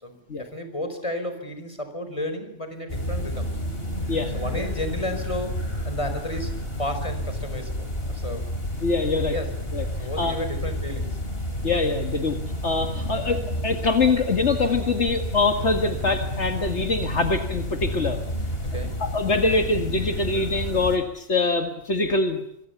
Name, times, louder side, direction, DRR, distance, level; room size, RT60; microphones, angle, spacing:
voice 1, 0.0-3.5 4.3-8.5 9.3-9.6 10.0-11.2 15.9-16.0 18.7-19.0, left 1 dB, 25° left, 8 dB, 5.0 m, -33 dB
sound 1, 2.9-21.0, equal, 50° left, 5.2 m, -30 dB
voice 2, 4.1-4.7 8.8-9.4 9.7-9.9 10.2-10.3 11.6-12.4 12.6-18.2 19.0-22.4, left 3 dB, 70° left, 5 dB, 2.2 m, -24 dB
26.5 x 22.5 x 7.2 m, 0.73 s
omnidirectional pair, 1.2 m